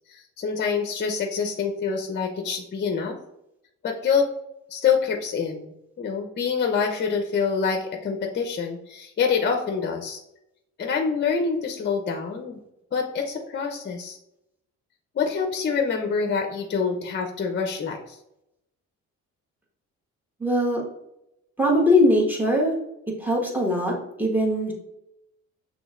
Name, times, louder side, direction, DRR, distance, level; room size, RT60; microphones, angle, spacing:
voice 1, 0.1-3.2 3.8-4.3 4.7-5.7 6.0-10.2 10.8-12.6 12.9-14.2 15.2-18.2, left 5 dB, 35° left, 3 dB, 0.6 m, -26 dB
voice 2, 20.4-20.8 21.6-22.7 23.2-24.7, left 1 dB, 5° right, -2 dB, 1.4 m, -21 dB
6.0 x 3.2 x 2.4 m, 0.84 s
cardioid pair, 90°, 30 cm